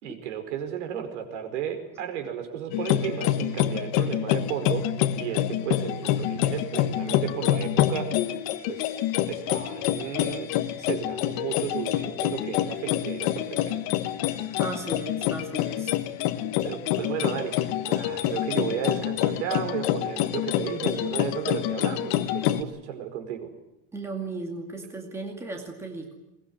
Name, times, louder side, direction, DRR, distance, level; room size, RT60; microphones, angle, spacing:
voice 1, 0.0-4.9 5.2-8.1 8.7-9.0 9.3-10.5 10.8-13.8 16.6-23.5, right 9 dB, 75° right, 7 dB, 5.0 m, -33 dB
sound 1, 2.7-22.6, left 12 dB, 45° left, 1.3 m, -27 dB
voice 2, 14.6-16.0 23.9-26.1, right 3 dB, 5° right, 2 dB, 2.3 m, -36 dB
22.0 x 20.5 x 9.7 m, 0.91 s
supercardioid pair, 180°, 36 cm